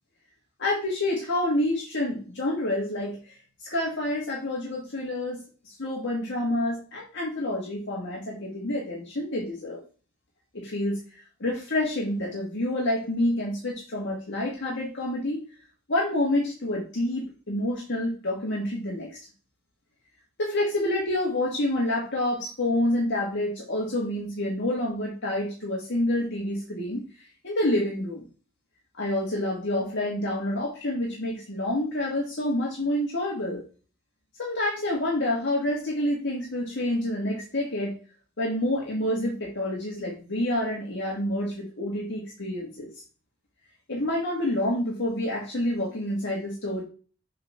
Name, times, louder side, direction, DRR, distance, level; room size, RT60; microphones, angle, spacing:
voice 1, 0.6-3.2 3.6-5.4 5.7-9.8 10.5-11.0 11.4-15.4 15.9-19.2 20.4-27.0 27.4-28.3 29.0-33.6 34.4-38.0 38.4-42.9 43.9-46.8, left 1 dB, 60° left, -3 dB, 1.8 m, -28 dB
6.6 x 4.0 x 5.7 m, 0.37 s
head